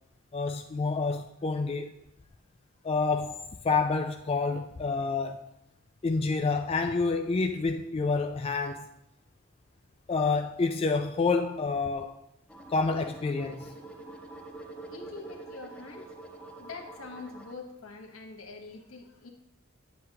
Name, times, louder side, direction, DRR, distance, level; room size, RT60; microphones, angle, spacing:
voice 1, 0.3-1.9 2.8-5.5 6.0-8.9 10.1-12.1 12.7-13.7, left 4 dB, 30° left, 0.3 m, -28 dB
sound 1, 12.5-17.5, right 2 dB, 5° left, 0.8 m, -46 dB
voice 2, 14.9-16.2 16.6-19.3, left 4 dB, 80° left, 1.1 m, -44 dB
9.2 x 7.6 x 2.8 m
head